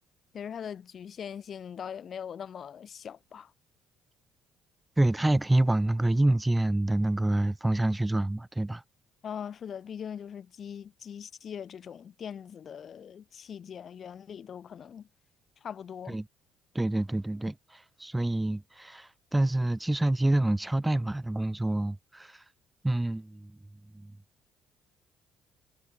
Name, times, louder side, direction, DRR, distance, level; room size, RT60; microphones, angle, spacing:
voice 1, 0.3-3.5 9.2-15.1 15.6-16.2, left 8 dB, 50° left, 1.0 m, -41 dB
voice 2, 5.0-8.8 16.1-16.2 16.7-22.4 22.8-23.5 24.0-24.1, right 1 dB, 10° right, 2.1 m, -27 dB
hypercardioid pair, 50°, 0 cm